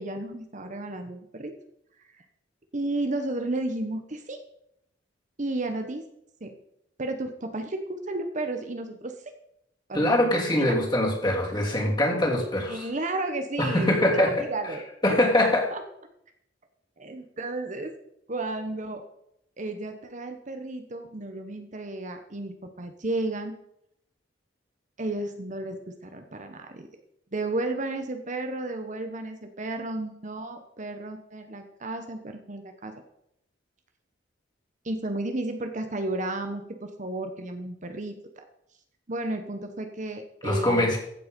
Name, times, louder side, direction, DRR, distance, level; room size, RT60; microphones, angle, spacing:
voice 1, 0.0-1.5 2.1-2.2 2.7-4.4 5.4-6.0 6.4-6.5 7.0-9.1 9.9-10.8 12.7-14.8 15.7-15.8 17.0-17.9 18.3-19.0 19.6-23.5 25.0-26.9 27.3-32.9 34.8-38.4 39.1-41.0, right 2 dB, 40° right, 6 dB, 1.1 m, -33 dB
voice 2, 9.9-12.9 13.6-14.3 15.0-15.7 40.4-41.0, left 1 dB, 25° left, -1 dB, 3.1 m, -23 dB
15.0 x 7.8 x 5.3 m, 0.76 s
head